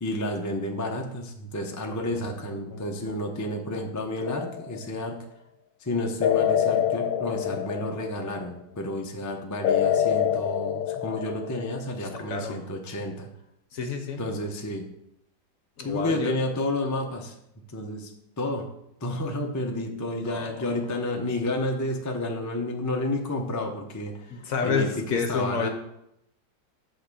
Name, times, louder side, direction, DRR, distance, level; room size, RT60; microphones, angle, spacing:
voice 1, 0.0-5.1 5.8-13.3 14.2-14.9 15.8-17.3 17.7-18.1 18.4-18.7 19.0-24.3 24.6-25.7, left 1 dB, 20° left, 2 dB, 0.4 m, -30 dB
voice 2, 2.4-3.0 12.0-12.6 13.7-14.2 15.8-16.3 20.2-20.6 24.3-25.7, left 5 dB, 55° left, 5 dB, 1.1 m, -30 dB
sound 1, 4.2-4.8 6.2-8.3 9.6-11.7, left 9 dB, 80° left, 1.3 m, -25 dB
8.5 x 4.3 x 6.8 m, 0.80 s
omnidirectional pair, 2.0 m